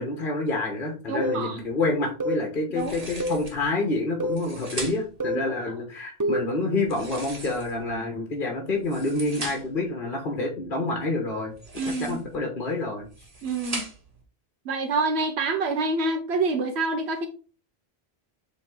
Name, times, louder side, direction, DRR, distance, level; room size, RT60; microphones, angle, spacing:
voice 1, 0.0-11.5 12.0-13.1, left 2 dB, 55° left, 2 dB, 1.5 m, -28 dB
voice 2, 1.1-1.6 2.7-3.0 5.3-5.7 11.8-12.2 13.4-13.9 14.6-17.3, right 3 dB, 90° right, 4 dB, 1.1 m, -27 dB
sound 1, 1.2-1.5 2.2-2.5 3.2-3.5 4.2-4.5 5.2-5.5 6.2-6.5, equal, 20° right, 0.6 m, -27 dB
sound 2, 2.7-3.6 4.2-5.2 6.8-7.9 8.7-9.8 11.5-12.4 13.0-14.2, right 2 dB, 35° right, 1.6 m, -39 dB
7.4 x 3.4 x 3.8 m, 0.37 s
omnidirectional pair, 1.1 m